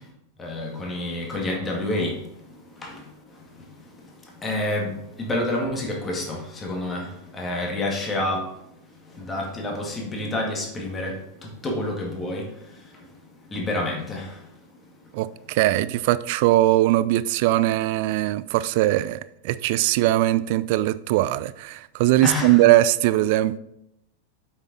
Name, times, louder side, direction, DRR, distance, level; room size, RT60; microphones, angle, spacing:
voice 1, 0.4-2.2 2.8-3.0 4.4-8.5 9.2-12.5 13.5-14.4 22.2-22.7, left 1 dB, 20° left, 2.0 m, -28 dB
voice 2, 15.1-23.6, right 15 dB, 50° right, 0.4 m, -20 dB
7.9 x 6.1 x 4.1 m
figure-of-eight pair, 90°, 0 cm